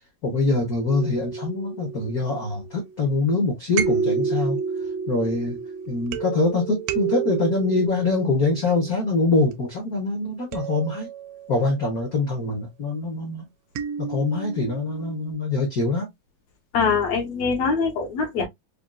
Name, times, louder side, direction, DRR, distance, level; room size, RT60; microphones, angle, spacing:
voice 1, 0.2-4.6 5.1-5.6 5.9-11.1 11.5-13.4 14.0-16.1, left 3 dB, 80° left, 0.8 m, -24 dB
sound 1, 0.9-2.8 3.7-9.5 10.5-11.9 13.7-15.3, right 7 dB, 80° right, 1.6 m, -30 dB
voice 2, 16.7-18.5, left 5 dB, 65° left, 2.2 m, -23 dB
5.5 x 2.4 x 2.3 m
omnidirectional pair, 3.3 m